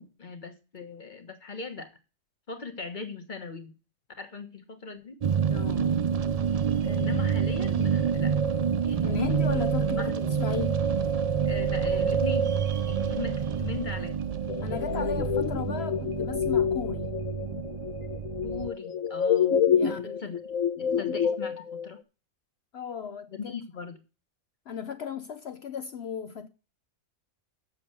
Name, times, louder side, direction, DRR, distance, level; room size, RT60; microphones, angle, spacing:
voice 1, 0.0-1.9 2.5-3.7 4.2-5.2 6.8-8.3 8.8-9.7 10.0-10.4 11.4-12.5 12.9-14.2 18.4-19.6 19.8-20.4 20.8-22.0 23.3-24.0, left 4 dB, 35° left, 1.3 m, -39 dB
sound 1, 5.2-18.7, right 7 dB, 80° right, 0.3 m, -27 dB
voice 2, 5.5-6.1 9.0-10.8 14.6-17.1 19.7-20.2 22.7-23.6 24.7-26.5, left 7 dB, 60° left, 0.8 m, -36 dB
sound 2, 14.5-21.9, left 8 dB, 75° left, 1.2 m, -28 dB
7.7 x 6.8 x 6.6 m
omnidirectional pair, 1.4 m